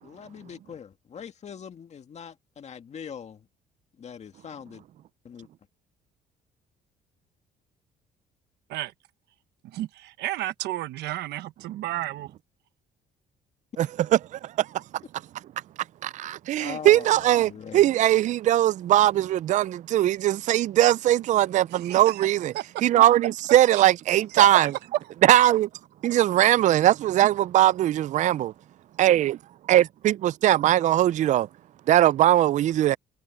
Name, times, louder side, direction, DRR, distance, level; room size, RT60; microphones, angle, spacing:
voice 1, 0.0-3.5 3.9-4.8 5.2-5.5 16.6-17.9, left 7 dB, 40° left, 2.0 m, -42 dB
voice 2, 9.6-12.3 21.7-22.8 23.7-25.0, right 15 dB, 80° right, 1.2 m, -33 dB
voice 3, 14.3-14.7 16.0-22.5 22.8-24.7 25.2-25.7 26.0-28.5 29.0-29.4 29.7-31.5 31.9-33.0, right 13 dB, 45° right, 0.4 m, -20 dB
cardioid pair, 110°, 17 cm